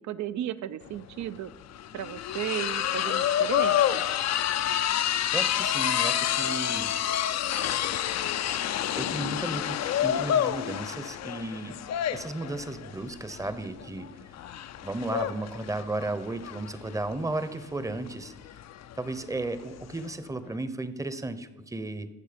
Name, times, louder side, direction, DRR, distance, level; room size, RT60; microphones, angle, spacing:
voice 1, 0.0-1.5 1.9-4.0, right 11 dB, 70° right, 14 dB, 0.6 m, -34 dB
sound 1, 0.9-20.1, left 10 dB, 60° left, 0.6 m, -29 dB
voice 2, 5.3-6.9 8.9-11.8 12.1-14.1 14.8-18.3 18.9-22.1, right 2 dB, 10° right, 12 dB, 0.8 m, -34 dB
15.0 x 6.3 x 5.1 m, 1.1 s
cardioid pair, 90°, 30 cm